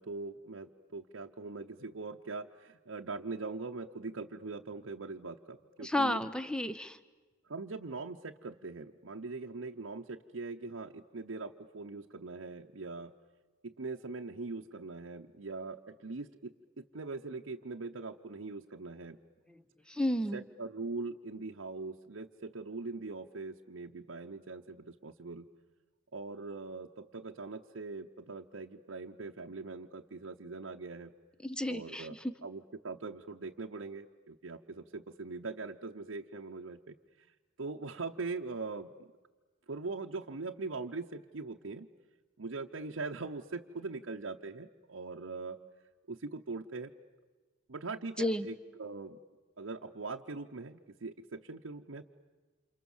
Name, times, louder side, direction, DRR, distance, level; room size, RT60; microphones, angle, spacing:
voice 1, 0.0-6.2 7.5-13.1 13.6-19.2 20.3-25.5 26.1-31.1 31.7-32.1 32.4-37.3 37.6-39.1 39.7-41.9 42.4-45.6 46.1-46.9 47.7-49.2 49.6-52.0, right 3 dB, 80° right, 1 dB, 0.9 m, -41 dB
voice 2, 5.8-7.0 19.9-20.4 31.4-32.1 48.2-48.5, left 1 dB, 5° left, 12 dB, 0.9 m, -32 dB
29.0 x 27.5 x 7.2 m, 1.3 s
head